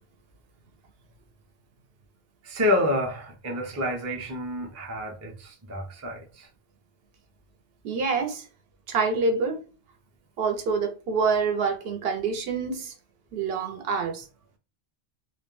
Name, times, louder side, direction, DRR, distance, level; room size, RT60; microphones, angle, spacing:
voice 1, 2.4-6.5, left 1 dB, 25° right, 0.3 m, -28 dB
voice 2, 7.8-8.4 8.9-9.6 10.4-12.9 13.3-14.2, right 4 dB, 75° right, 0.8 m, -26 dB
2.2 x 2.1 x 3.0 m
omnidirectional pair, 1.0 m